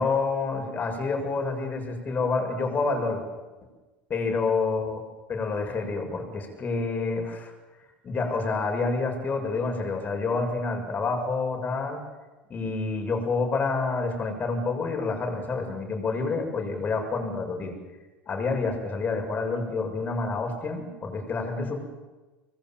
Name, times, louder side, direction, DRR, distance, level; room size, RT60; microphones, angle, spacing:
voice 1, 0.0-3.2 4.1-5.0 5.3-7.5 8.0-12.0 12.5-17.7 18.3-21.8, left 4 dB, 30° left, 3 dB, 6.9 m, -28 dB
25.5 x 21.5 x 7.5 m, 1.2 s
figure-of-eight pair, 75°, 6 cm